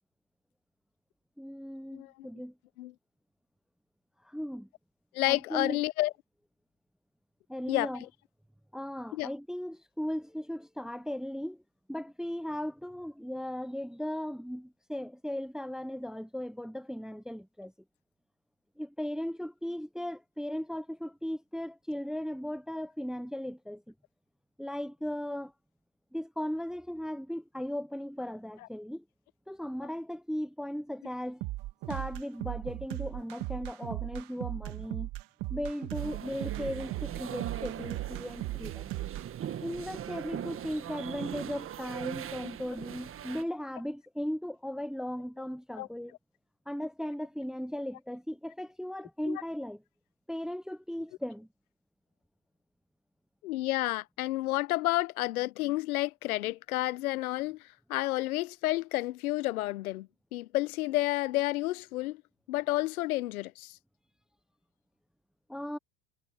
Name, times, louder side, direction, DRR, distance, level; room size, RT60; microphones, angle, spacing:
voice 1, 1.4-2.5 4.2-4.7 5.3-5.8 7.5-8.0 8.7-11.6 11.9-17.7 18.8-23.9 24.6-25.5 26.1-29.0 29.5-31.4 31.9-35.1 35.5-38.9 39.6-46.2 46.7-49.8 50.3-51.5 65.5-65.8, equal, ahead, 0.6 m, -37 dB
voice 2, 1.9-2.3 2.8-2.9 5.1-6.1 7.7-8.1 9.1-9.3 42.4-42.5 45.8-45.9 49.3-49.4 53.4-62.2 62.5-63.8, left 17 dB, 85° left, 0.8 m, -30 dB
sound 1, 31.4-39.3, right 18 dB, 50° right, 1.9 m, -37 dB
sound 2, 36.0-43.4, right 10 dB, 30° right, 1.5 m, -40 dB
hypercardioid pair, 105°, 42 cm